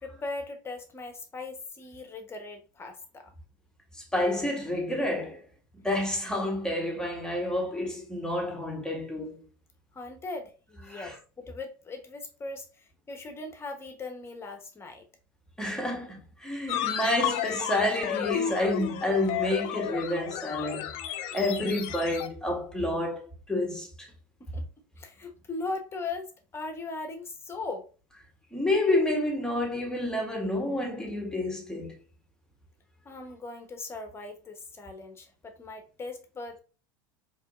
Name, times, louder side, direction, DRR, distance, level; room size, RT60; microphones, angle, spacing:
voice 1, 0.0-3.3 9.9-15.0 24.5-24.6 25.0-27.9 33.0-36.6, left 3 dB, 20° left, 1.0 m, -39 dB
voice 2, 3.9-5.4 5.8-9.4 10.9-11.1 15.6-20.9 21.3-24.1 28.5-32.0, left 1 dB, 5° left, 1.3 m, -29 dB
sound 1, 16.7-22.3, left 10 dB, 55° left, 0.5 m, -32 dB
4.3 x 3.0 x 2.5 m
hypercardioid pair, 90°, 12 cm